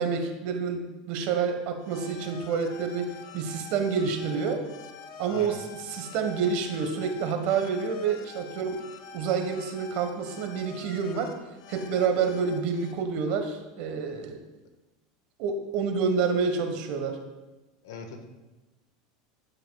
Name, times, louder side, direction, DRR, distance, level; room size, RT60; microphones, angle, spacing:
voice 1, 0.0-4.6 5.2-5.6 5.9-8.8 9.1-11.3 11.7-14.4 15.4-17.2, right 6 dB, 55° right, 5 dB, 1.2 m, -28 dB
sound 1, 1.8-12.9, left 6 dB, 65° left, 0.9 m, -46 dB
voice 2, 17.8-18.2, left 5 dB, 80° left, 5 dB, 1.3 m, -40 dB
14.0 x 5.7 x 2.3 m, 1.1 s
supercardioid pair, 140°, 3 cm